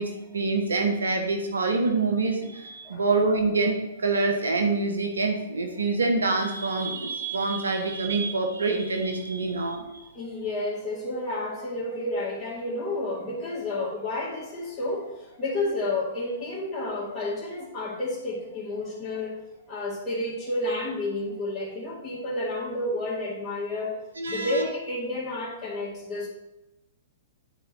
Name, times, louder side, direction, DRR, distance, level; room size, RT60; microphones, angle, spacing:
voice 1, 0.0-3.8 4.0-10.1 24.2-24.7, right 3 dB, 80° right, 4 dB, 1.1 m, -26 dB
voice 2, 2.5-3.2 5.6-5.7 7.2-7.3 10.1-26.3, left 2 dB, 20° left, -7 dB, 2.0 m, -31 dB
9.5 x 4.5 x 4.1 m, 0.98 s
figure-of-eight pair, 110°, 0 cm